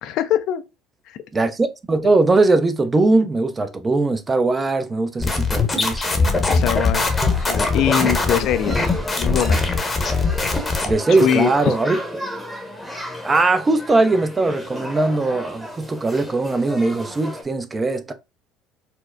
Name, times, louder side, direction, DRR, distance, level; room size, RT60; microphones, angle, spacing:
voice 1, 0.0-0.6 1.1-1.2 6.5-8.9 9.2-9.6 11.1-11.7, left 10 dB, 60° left, 0.3 m, -22 dB
voice 2, 1.3-6.5 10.9-12.0 13.2-18.1, right 3 dB, 25° right, 0.5 m, -20 dB
sound 1, 5.2-10.9, left 3 dB, 25° left, 0.8 m, -21 dB
sound 2, 6.9-17.4, equal, 5° right, 1.0 m, -33 dB
4.3 x 2.1 x 2.4 m
hypercardioid pair, 65°, 0 cm